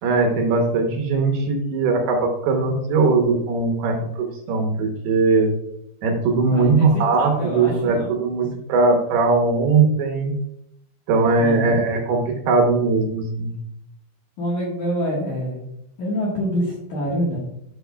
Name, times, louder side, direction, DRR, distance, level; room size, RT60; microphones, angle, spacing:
voice 1, 0.0-5.5 6.0-10.4 11.1-13.6, right 3 dB, 75° right, 2 dB, 2.6 m, -20 dB
voice 2, 6.5-8.1 11.4-11.8 14.4-15.6 16.0-17.4, equal, 60° left, -5 dB, 2.1 m, -26 dB
12.5 x 5.3 x 2.2 m, 0.77 s
omnidirectional pair, 5.2 m